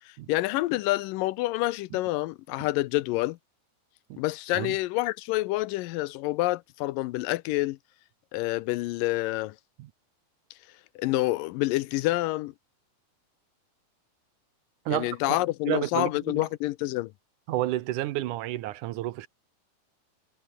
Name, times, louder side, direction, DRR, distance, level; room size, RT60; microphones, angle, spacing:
voice 1, 0.1-3.4 4.2-7.8 8.3-9.6 11.0-12.5 14.9-17.1, left 18 dB, 80° left, 2.2 m, -28 dB
voice 2, 14.9-15.4 15.7-16.5 17.5-19.3, right 15 dB, 70° right, 2.2 m, -31 dB
omnidirectional pair, 4.1 m